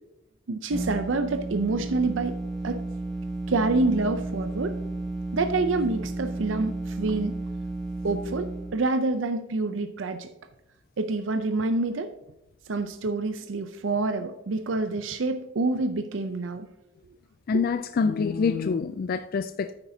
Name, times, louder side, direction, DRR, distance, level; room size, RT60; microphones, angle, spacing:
voice 1, 0.5-2.4 2.6-2.8 3.5-4.8 5.3-7.4 8.0-10.3 11.0-12.1 12.7-16.7, right 3 dB, 80° right, 0.6 m, -27 dB
sound 1, 0.7-8.7, right 2 dB, ahead, 2.1 m, -33 dB
voice 2, 17.5-19.8, left 5 dB, 50° left, 0.3 m, -26 dB
9.8 x 8.8 x 2.8 m
head